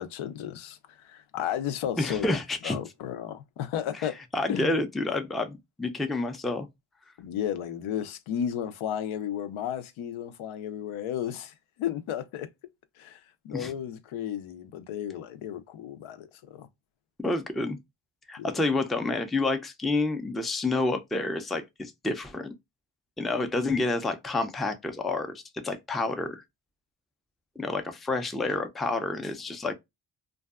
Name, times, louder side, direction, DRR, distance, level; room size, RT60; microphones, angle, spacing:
voice 1, 0.0-2.4 2.6-4.2 4.5-4.8 7.2-12.5 13.0-16.7 18.4-18.5, left 9 dB, 85° left, 0.5 m, -33 dB
voice 2, 2.0-2.8 3.9-6.7 13.5-13.7 17.2-17.8 18.3-22.5 23.2-26.4 27.6-29.7, left 2 dB, ahead, 0.3 m, -29 dB
2.6 x 2.2 x 2.2 m
cardioid pair, 70°, 47 cm